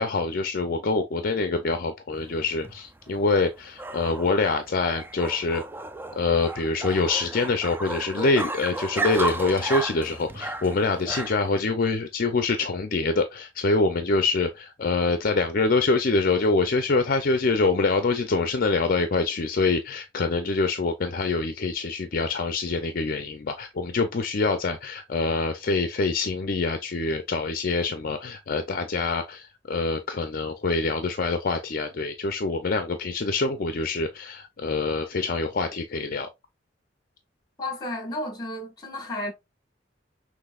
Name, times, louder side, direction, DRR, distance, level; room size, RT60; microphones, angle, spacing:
voice 1, 0.0-5.6 6.1-36.3, left 3 dB, 50° left, 0.5 m, -25 dB
sound 1, 2.2-11.6, right 2 dB, 10° right, 0.3 m, -34 dB
voice 2, 37.6-39.3, left 1 dB, 25° left, 1.6 m, -32 dB
6.0 x 3.1 x 2.3 m
head